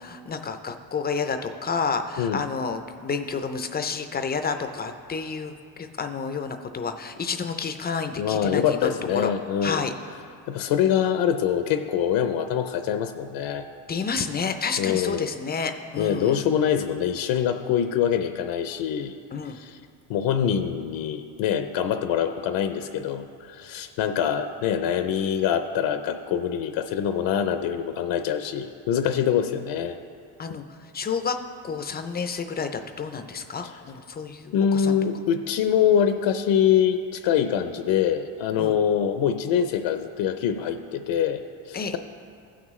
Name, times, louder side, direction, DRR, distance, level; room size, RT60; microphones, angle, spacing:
voice 1, 0.0-9.3 9.6-9.9 13.9-16.4 19.3-19.6 30.4-30.6 30.9-31.4 31.6-34.9 38.6-38.7 41.7-42.0, left 5 dB, 25° left, 8 dB, 0.3 m, -30 dB
voice 2, 8.2-9.9 10.5-13.7 14.8-15.3 16.0-19.2 19.5-19.8 20.1-30.0 34.5-42.0, left 8 dB, 70° left, 8 dB, 0.6 m, -24 dB
15.5 x 6.1 x 3.1 m, 2.4 s
cardioid pair, 125°, 47 cm